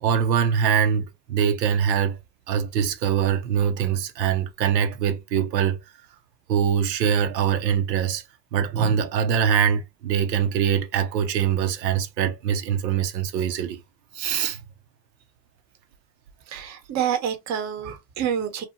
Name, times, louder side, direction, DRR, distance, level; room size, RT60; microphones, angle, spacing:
voice 1, 0.0-2.2 2.5-5.8 6.5-8.2 8.5-13.8 14.1-14.6, right 8 dB, 80° right, 0.7 m, -23 dB
voice 2, 16.5-18.6, right 9 dB, 35° right, 0.8 m, -27 dB
2.7 x 2.3 x 2.6 m
hypercardioid pair, 95°, 49 cm